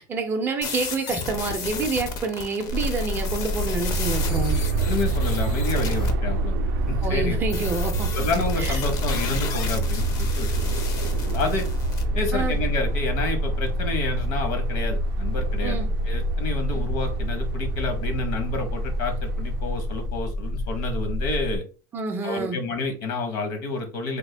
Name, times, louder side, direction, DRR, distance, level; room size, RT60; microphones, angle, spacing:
voice 1, 0.0-4.6 7.0-8.1 8.6-8.8 12.3-12.6 15.6-15.9 16.7-16.8 21.9-22.6, right 4 dB, 20° right, 5 dB, 0.5 m, -28 dB
sound 1, 0.6-6.1 7.5-12.0, left 5 dB, 35° left, 0.6 m, -33 dB
sound 2, 2.7-21.6, left 1 dB, 90° left, 0.7 m, -28 dB
Aircraft, 3.9-20.1, right 6 dB, 80° right, 0.4 m, -30 dB
voice 2, 4.8-6.5 6.9-7.4 8.1-10.7 11.2-11.7 12.1-21.6 22.2-24.2, left 3 dB, 65° left, 5 dB, 1.0 m, -29 dB
3.4 x 2.2 x 3.3 m, 0.35 s
supercardioid pair, 160°, 11 cm